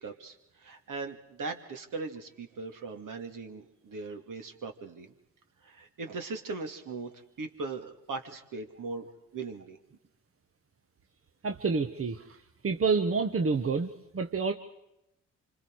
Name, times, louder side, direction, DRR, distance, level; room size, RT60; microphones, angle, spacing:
voice 1, 0.0-5.1 5.6-9.0 9.3-9.8, right 3 dB, 55° right, 5 dB, 2.5 m, -39 dB
voice 2, 11.4-12.2 12.6-13.9 14.1-14.5, right 4 dB, 35° right, 5 dB, 1.4 m, -27 dB
27.5 x 25.5 x 4.8 m, 0.86 s
hypercardioid pair, 45°, 38 cm